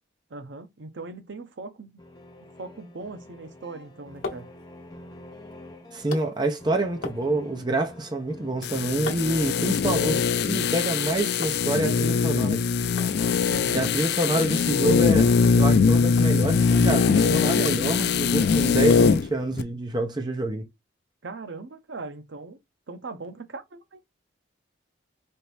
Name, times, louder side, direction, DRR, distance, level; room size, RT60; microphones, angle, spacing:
voice 1, 0.3-2.0 2.6-4.5 13.5-13.9 21.2-22.6 22.9-24.0, right 3 dB, 70° right, 0.7 m, -39 dB
sound 1, 2.0-8.9, left 1 dB, 20° left, 0.6 m, -46 dB
sound 2, 3.7-11.6 11.9-12.6 13.0-13.2 13.4-13.5 13.8-15.1 15.4-15.6 16.2-16.3 16.7-17.3 17.6-18.5 18.9-19.2 19.7-19.8, left 4 dB, 90° left, 0.9 m, -42 dB
voice 2, 5.9-12.6 13.7-20.7, right 1 dB, 25° right, 0.6 m, -27 dB
sound 3, 8.6-19.3 19.6-19.7, left 5 dB, 55° left, 0.3 m, -22 dB
4.4 x 2.6 x 3.4 m
head